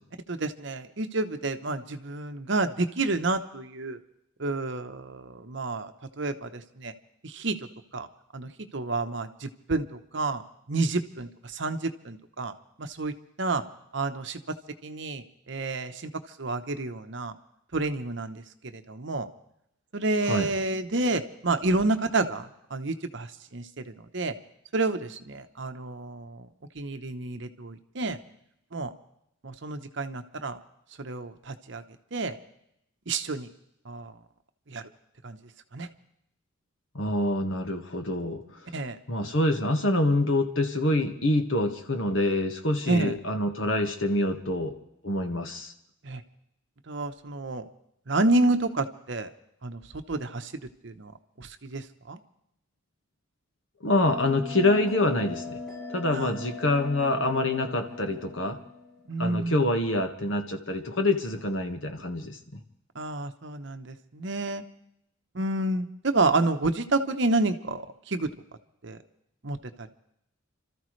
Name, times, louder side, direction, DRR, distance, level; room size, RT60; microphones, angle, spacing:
voice 1, 0.3-4.0 4.4-6.9 7.2-7.6 7.9-8.1 8.3-10.4 10.7-12.5 12.8-13.6 13.9-14.4 14.8-16.1 16.4-17.3 17.7-19.3 19.9-24.3 24.7-26.5 26.7-28.2 28.7-28.9 29.4-30.6 31.0-31.8 32.1-32.4 33.1-33.5 33.8-34.1 34.7-34.8 35.2-35.4 35.7-35.9 38.7-39.0 42.9-43.1 46.0-46.2 46.9-47.7 48.1-49.3 49.6-49.8 50.1-50.5 50.8-51.1 51.4-52.2 56.1-56.3 59.1-59.7 62.9-64.6 65.3-68.3 68.8-69.0 69.4-69.9, right 2 dB, 60° right, 8 dB, 0.9 m, -29 dB
voice 2, 36.9-38.4 39.1-44.7 45.0-45.7 53.8-55.6 55.9-58.6 59.2-62.6, left 1 dB, 70° left, 5 dB, 1.6 m, -26 dB
Bell, 54.0-59.1, left 3 dB, 5° left, 6.2 m, -40 dB
29.0 x 13.5 x 3.2 m, 0.78 s
head